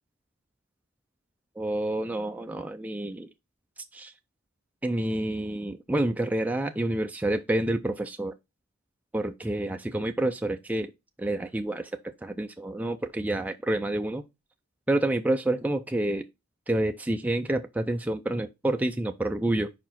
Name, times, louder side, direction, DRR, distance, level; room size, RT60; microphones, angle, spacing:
voice 1, 1.6-3.3 3.9-4.1 4.8-8.3 9.1-10.9 11.2-11.9 12.2-14.2 14.9-16.2 16.7-19.7, right 1 dB, 5° right, 0.4 m, -28 dB
5.1 x 4.7 x 5.7 m
head